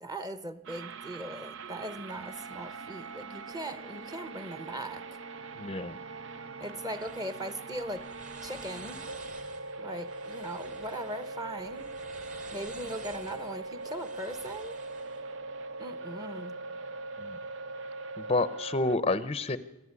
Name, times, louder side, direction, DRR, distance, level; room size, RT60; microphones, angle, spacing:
voice 1, 0.0-5.0 6.6-8.1 8.4-9.0 9.8-11.9 12.5-14.8 15.8-16.5, right 1 dB, 20° right, 12 dB, 1.2 m, -39 dB
sound 1, 0.6-19.0, right 3 dB, 60° right, 0.7 m, -41 dB
voice 2, 5.6-6.0 17.2-17.4 18.2-19.6, left 2 dB, 30° left, 15 dB, 0.7 m, -29 dB
sound 2, 7.0-15.3, right 3 dB, 40° right, 2.7 m, -50 dB
27.0 x 13.5 x 9.7 m, 1.0 s
head